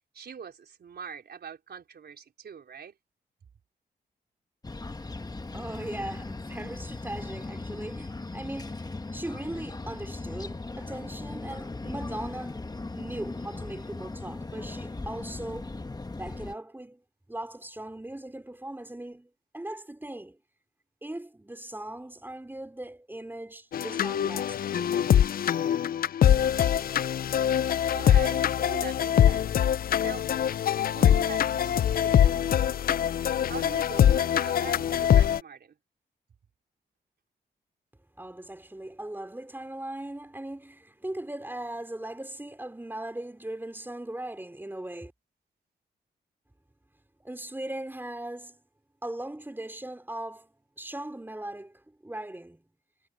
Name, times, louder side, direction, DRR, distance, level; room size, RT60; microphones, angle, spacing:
voice 1, 0.1-3.0 27.9-29.6 30.0-30.3 30.9-32.5 33.4-35.7, right 7 dB, 70° right, 4.3 m, -42 dB
sound 1, 4.6-16.5, left 3 dB, 20° left, 1.3 m, -38 dB
voice 2, 5.5-12.6 12.9-15.8 16.2-17.0 17.3-20.4 21.0-25.0 38.1-45.1 47.2-48.6 49.0-52.6, right 1 dB, 10° right, 4.3 m, -39 dB
sound 2, 23.7-35.4, left 10 dB, 60° left, 0.4 m, -23 dB
cardioid pair, 65°, 18 cm